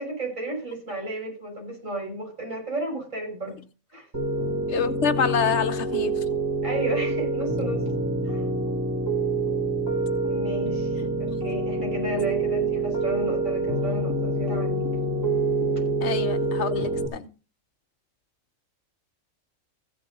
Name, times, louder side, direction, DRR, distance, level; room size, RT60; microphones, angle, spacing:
voice 1, 0.0-3.6 3.9-4.1 6.6-7.8 8.2-8.4 10.2-14.8, right 1 dB, 70° right, 6.6 m, -33 dB
Piano, 4.1-17.1, right 2 dB, 15° right, 2.6 m, -26 dB
voice 2, 4.7-6.3 11.3-11.4 16.0-17.3, left 6 dB, 60° left, 1.2 m, -27 dB
15.5 x 6.5 x 5.3 m
omnidirectional pair, 1.4 m